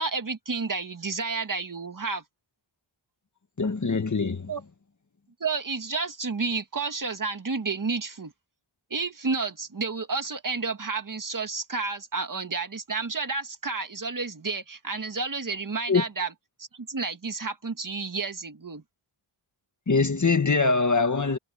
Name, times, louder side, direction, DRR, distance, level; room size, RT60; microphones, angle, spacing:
voice 1, 0.0-2.2 4.5-4.6 5.4-8.3 8.9-16.3 16.8-18.8, right 4 dB, 40° right, 1.9 m, -31 dB
voice 2, 3.6-4.5 15.9-16.0 19.9-21.4, left 4 dB, 35° left, 1.8 m, -23 dB
wide cardioid pair, 120°, 48 cm